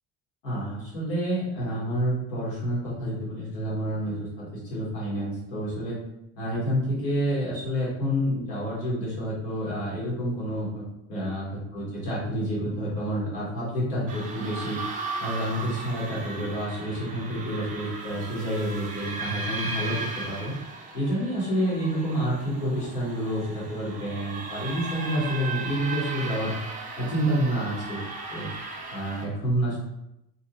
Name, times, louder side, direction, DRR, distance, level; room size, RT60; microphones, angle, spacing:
voice 1, 0.4-4.4 4.7-6.0 6.4-10.8 11.1-14.8 15.2-20.5 20.9-28.5 28.9-29.8, equal, 85° left, -6 dB, 1.2 m, -29 dB
sound 1, 14.1-29.3, right 3 dB, 20° right, 0.3 m, -36 dB
2.6 x 2.5 x 2.7 m, 0.85 s
hypercardioid pair, 60°, 48 cm